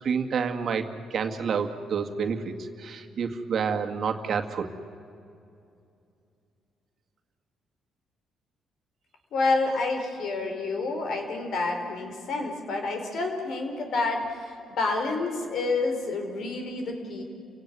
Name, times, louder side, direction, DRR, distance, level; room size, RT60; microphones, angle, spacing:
voice 1, 0.0-4.7, right 6 dB, 55° right, 5 dB, 2.0 m, -29 dB
voice 2, 9.3-17.2, left 3 dB, 70° left, 4 dB, 4.7 m, -29 dB
30.0 x 17.5 x 9.7 m, 2.6 s
cardioid pair, 90°, 0 cm